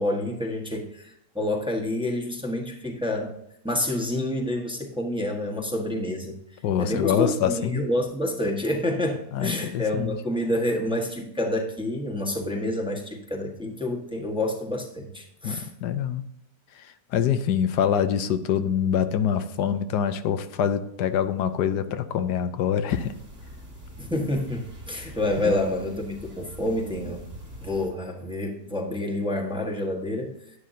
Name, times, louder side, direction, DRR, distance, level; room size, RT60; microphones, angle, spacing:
voice 1, 0.0-3.3 3.6-6.4 6.8-15.7 24.0-27.2 27.6-30.3, left 1 dB, 5° right, 0 dB, 1.2 m, -28 dB
voice 2, 6.6-7.8 9.3-10.2 15.4-16.2 17.1-23.1 25.4-25.6, left 9 dB, 90° left, 10 dB, 1.3 m, -25 dB
sound 1, 22.9-27.9, right 1 dB, 55° right, 3.4 m, -43 dB
11.5 x 9.3 x 2.8 m, 0.79 s
omnidirectional pair, 1.8 m